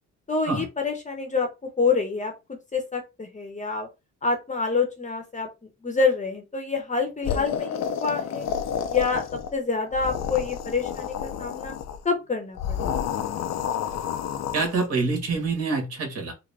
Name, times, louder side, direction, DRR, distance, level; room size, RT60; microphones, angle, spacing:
voice 1, 0.3-1.5 1.8-3.9 4.2-5.5 5.8-8.5 8.9-9.2 9.5-11.7 12.0-12.8, left 4 dB, 25° left, 4 dB, 0.9 m, -27 dB
sound 1, 7.2-9.6 9.9-12.0 12.6-14.9, left 8 dB, 60° left, 0.6 m, -30 dB
voice 2, 14.5-16.3, right 4 dB, 55° right, 2 dB, 1.7 m, -26 dB
3.6 x 2.1 x 3.3 m, 0.25 s
cardioid pair, 90°, 30 cm